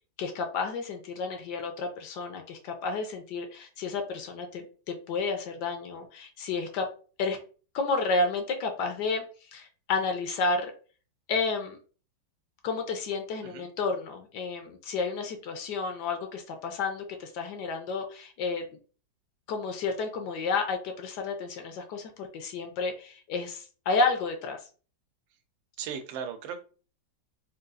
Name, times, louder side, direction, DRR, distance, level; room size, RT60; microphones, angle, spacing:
voice 1, 0.2-6.9 7.2-7.4 7.7-9.2 9.5-10.7 11.3-11.8 12.6-18.6 19.5-24.6, left 4 dB, 70° left, 5 dB, 1.1 m, -31 dB
voice 2, 25.8-26.6, right 7 dB, 85° right, 7 dB, 1.3 m, -37 dB
3.9 x 2.3 x 2.4 m, 0.38 s
omnidirectional pair, 2.0 m